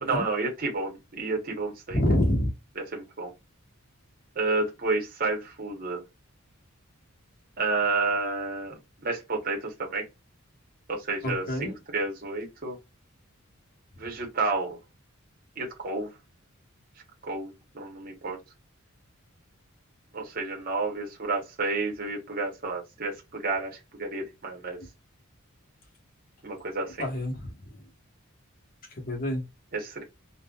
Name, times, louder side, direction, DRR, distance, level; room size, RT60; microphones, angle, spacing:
voice 1, 0.0-2.0 2.9-3.3 4.4-6.0 7.6-10.0 10.9-12.8 14.0-14.8 15.6-16.1 17.2-18.4 20.1-24.8 26.4-27.1 29.7-30.0, right 3 dB, 45° right, 0.8 m, -30 dB
voice 2, 1.9-2.5 11.2-11.7 27.0-27.5 29.0-29.4, left 1 dB, 40° left, 1.0 m, -26 dB
3.7 x 2.1 x 2.2 m
head